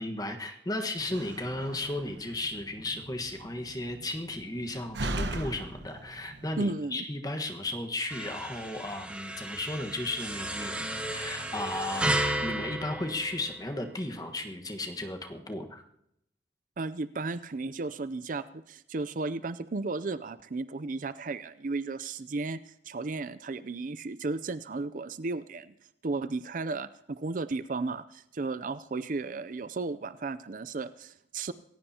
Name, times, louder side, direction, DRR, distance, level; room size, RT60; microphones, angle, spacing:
voice 1, 0.0-10.7 11.1-12.1 12.4-15.8, left 2 dB, 20° left, 4 dB, 1.4 m, -35 dB
Slam, 1.0-6.6, right 1 dB, 80° right, 1.3 m, -39 dB
voice 2, 6.6-7.0 16.8-22.6 22.8-25.7 26.0-31.5, right 3 dB, 45° right, 15 dB, 0.5 m, -34 dB
sound 1, 8.1-13.9, right 1 dB, 5° right, 1.5 m, -33 dB
27.5 x 15.5 x 2.9 m, 0.77 s
head